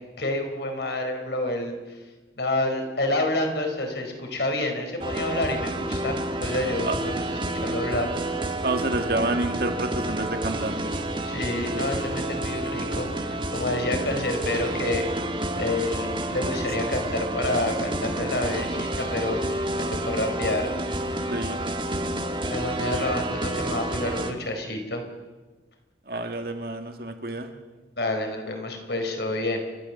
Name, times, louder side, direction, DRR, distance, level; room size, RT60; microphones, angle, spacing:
voice 1, 0.2-1.8 2.4-8.1 11.2-15.1 15.6-19.4 19.8-20.7 22.5-25.0 28.0-29.6, left 1 dB, 70° left, 4 dB, 4.4 m, -28 dB
sound 1, 5.0-24.3, right 1 dB, 30° right, 1.5 m, -29 dB
voice 2, 8.6-10.8 21.3-21.6 26.1-27.5, right 2 dB, 55° right, 5 dB, 2.1 m, -28 dB
29.5 x 13.0 x 7.3 m, 1.2 s
head